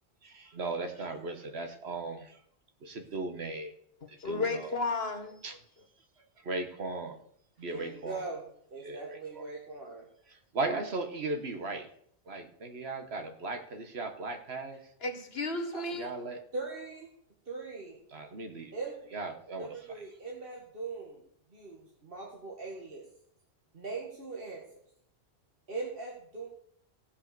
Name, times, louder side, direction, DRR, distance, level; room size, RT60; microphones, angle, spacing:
voice 1, 0.2-2.4 2.8-3.7 4.1-4.7 5.4-5.6 6.4-7.2 7.6-8.3 8.8-9.5 10.3-11.9 12.3-14.8 15.9-16.4 18.1-18.7 19.1-20.0, right 3 dB, 80° right, 7 dB, 1.6 m, -37 dB
voice 2, 4.2-5.4 15.0-16.1, left 3 dB, 70° left, 7 dB, 1.8 m, -33 dB
voice 3, 7.7-8.4 8.7-10.1 15.7-15.8 16.5-17.1 17.5-18.0 18.7-19.2 19.6-21.2 21.5-23.1 23.7-24.6 25.7-26.5, right 3 dB, 60° right, -2 dB, 2.0 m, -40 dB
16.5 x 5.7 x 6.8 m, 0.67 s
omnidirectional pair, 1.1 m